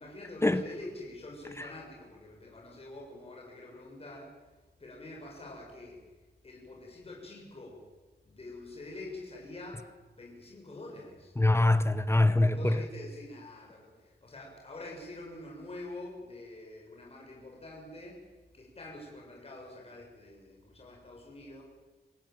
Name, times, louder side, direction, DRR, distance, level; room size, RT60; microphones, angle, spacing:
voice 1, 0.0-4.3 4.8-6.0 6.4-7.8 8.2-9.9 10.1-11.3 12.4-18.2 18.5-21.6, left 2 dB, 35° left, 7.1 m, -46 dB
voice 2, 11.4-12.8, left 2 dB, 15° left, 1.1 m, -24 dB
27.0 x 18.5 x 9.1 m
wide cardioid pair, 120°, 17 cm